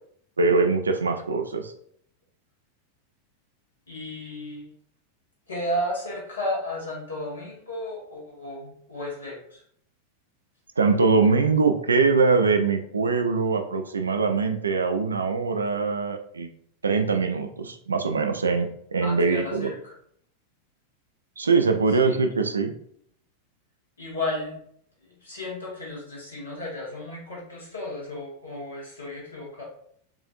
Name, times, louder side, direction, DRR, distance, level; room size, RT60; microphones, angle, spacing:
voice 1, 0.4-1.7 10.8-16.5 16.8-19.7 21.4-22.7, right 4 dB, 75° right, 6 dB, 0.4 m, -22 dB
voice 2, 3.9-4.7 5.5-9.6 19.0-20.0 21.9-22.2 24.0-24.6 25.0-29.6, left 1 dB, 75° left, -4 dB, 1.4 m, -33 dB
4.7 x 2.5 x 2.5 m, 0.67 s
figure-of-eight pair, 90°, 0 cm